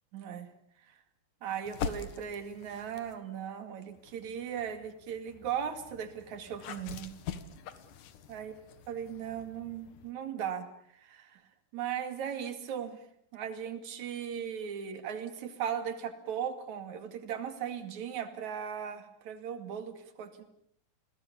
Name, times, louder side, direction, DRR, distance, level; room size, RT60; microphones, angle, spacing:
voice 1, 0.1-0.5 0.8-0.9 1.4-7.1 8.3-8.5 8.9-10.7 10.9-11.4 11.7-13.0 13.3-20.4, right 8 dB, 70° right, 9 dB, 3.5 m, -37 dB
sound 1, 1.6-3.2 3.9-10.1, left 7 dB, 85° left, 3.0 m, -44 dB
29.5 x 21.0 x 7.0 m, 0.68 s
omnidirectional pair, 3.5 m